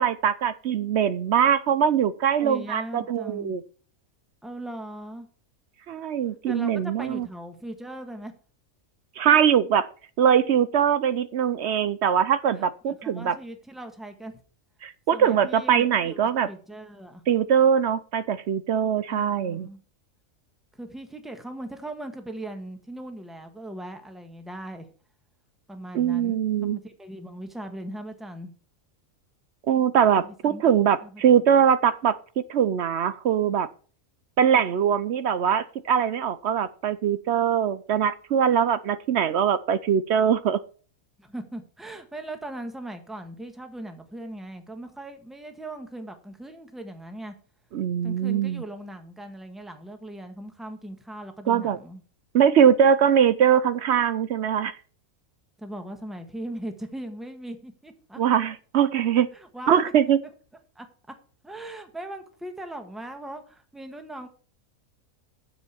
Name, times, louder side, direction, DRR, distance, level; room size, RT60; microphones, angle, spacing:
voice 1, 0.0-3.6 5.9-7.3 9.2-9.9 10.2-13.4 14.8-16.5 17.3-19.7 25.9-26.8 29.7-33.7 34.4-40.6 47.7-48.6 51.5-51.8 52.3-54.8 58.2-59.3 59.7-60.2, right 8 dB, 65° right, 14 dB, 0.7 m, -22 dB
voice 2, 2.4-3.6 4.4-5.3 6.4-8.3 12.5-14.4 15.1-17.2 19.1-19.8 20.7-24.9 25.7-28.5 30.1-30.6 31.0-31.2 41.2-47.3 48.0-52.0 55.6-58.2 59.3-59.9 60.7-60.9 61.4-64.3, right 1 dB, ahead, 6 dB, 1.4 m, -39 dB
9.5 x 7.5 x 4.4 m, 0.41 s
omnidirectional pair, 1.5 m